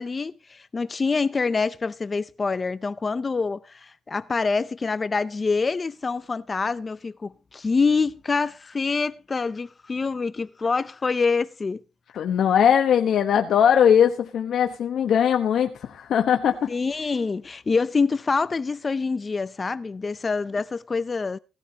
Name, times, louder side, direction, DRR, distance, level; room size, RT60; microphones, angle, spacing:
voice 1, 0.0-11.8 16.7-21.4, left 4 dB, 30° left, 0.5 m, -26 dB
voice 2, 12.1-16.7, left 8 dB, 65° left, 1.1 m, -20 dB
17.5 x 13.0 x 2.8 m
cardioid pair, 90°, 0 cm